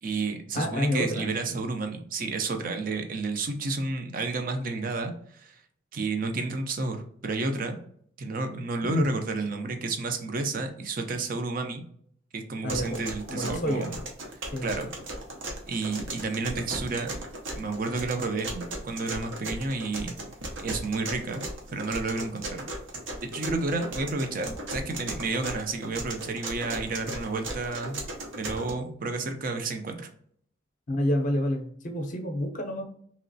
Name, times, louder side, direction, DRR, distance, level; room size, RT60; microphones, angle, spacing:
voice 1, 0.0-5.6 5.9-7.8 8.2-11.8 12.3-13.9 14.6-14.9 15.7-17.1 17.6-20.2 20.6-21.4 21.7-22.6 23.2-28.0 28.3-30.1, right 3 dB, 45° right, 6 dB, 0.5 m, -31 dB
voice 2, 0.5-1.3 8.8-9.1 12.6-13.0 13.3-13.9 14.5-14.7 30.9-32.8, equal, 40° left, 4 dB, 0.6 m, -28 dB
sound 1, 12.7-28.7, right 1 dB, 75° right, 0.7 m, -37 dB
3.0 x 2.9 x 2.6 m, 0.62 s
head